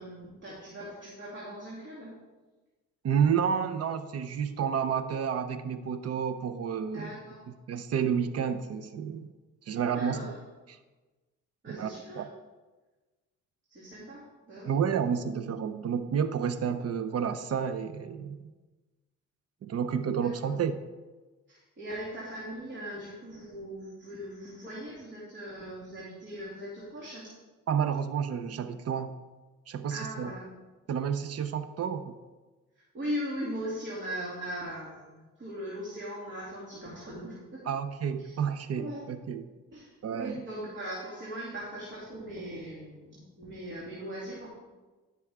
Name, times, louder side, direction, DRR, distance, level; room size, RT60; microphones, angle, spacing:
voice 1, 0.0-2.1 6.9-7.4 9.9-10.3 11.6-12.2 13.7-14.7 20.2-20.5 21.5-27.3 29.9-30.5 32.9-37.7 38.2-38.3 38.7-39.0 39.7-44.5, equal, 40° right, -6 dB, 2.6 m, -39 dB
voice 2, 3.0-7.2 7.7-9.3 9.7-10.3 10.7-10.8 11.7-12.3 14.6-18.5 19.6-20.8 27.7-29.2 29.7-30.3 30.9-32.2 37.7-39.5 40.0-40.4, right 7 dB, 55° right, 11 dB, 0.7 m, -30 dB
13.5 x 6.1 x 3.5 m, 1.2 s
cardioid pair, 90°, 30 cm